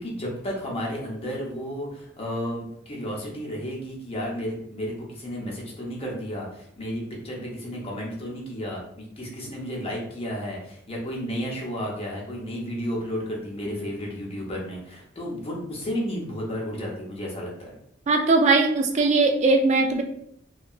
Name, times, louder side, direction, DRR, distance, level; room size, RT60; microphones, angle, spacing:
voice 1, 0.0-17.8, equal, 30° left, -2 dB, 0.7 m, -32 dB
voice 2, 18.1-20.0, right 3 dB, 35° right, 4 dB, 0.3 m, -20 dB
2.8 x 2.2 x 2.3 m, 0.69 s
head